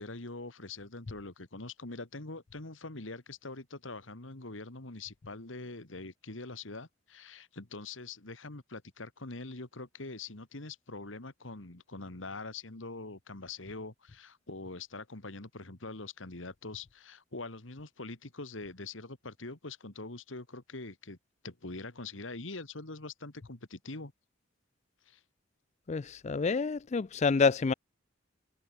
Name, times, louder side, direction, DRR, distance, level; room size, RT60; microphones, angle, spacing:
voice 1, 0.0-21.2 21.4-24.1 25.1-25.2, left 3 dB, 75° left, 2.3 m, -43 dB
voice 2, 25.9-27.7, left 4 dB, 35° left, 0.4 m, -28 dB
head